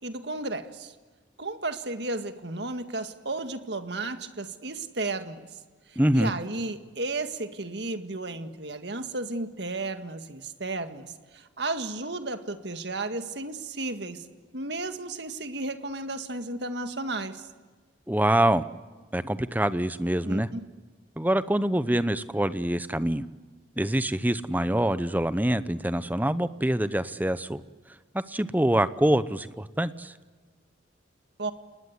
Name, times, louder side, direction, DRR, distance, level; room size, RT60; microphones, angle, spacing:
voice 1, 0.0-1.0 1.4-5.4 5.9-14.2 14.5-17.4 20.2-20.6 31.4-31.5, right 2 dB, 60° right, 8 dB, 1.9 m, -33 dB
voice 2, 6.0-6.3 18.1-18.6 19.1-20.5 21.2-23.3 23.8-27.6 28.1-30.1, right 1 dB, 10° right, 14 dB, 0.8 m, -25 dB
29.5 x 20.0 x 9.6 m, 1.4 s
head